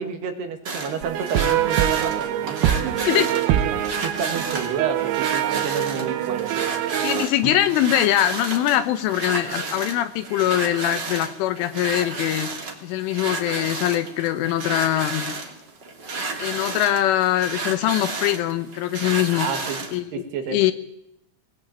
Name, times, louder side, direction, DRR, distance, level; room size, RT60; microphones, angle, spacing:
voice 1, 0.0-6.7 19.4-19.8 20.1-20.6, right 7 dB, 60° right, 6 dB, 3.4 m, -30 dB
sound 1, 0.6-20.0, right 3 dB, 35° right, 1.9 m, -32 dB
sound 2, 1.0-7.3, right 12 dB, 80° right, 3.9 m, -24 dB
voice 2, 7.0-12.5 12.8-15.3 16.4-19.5 19.9-20.1 20.5-20.7, left 13 dB, 75° left, 12 dB, 3.3 m, -22 dB
Drum, 7.4-10.1, right 4 dB, 40° left, 3.4 m, -43 dB
20.5 x 19.0 x 8.8 m, 0.80 s
omnidirectional pair, 6.0 m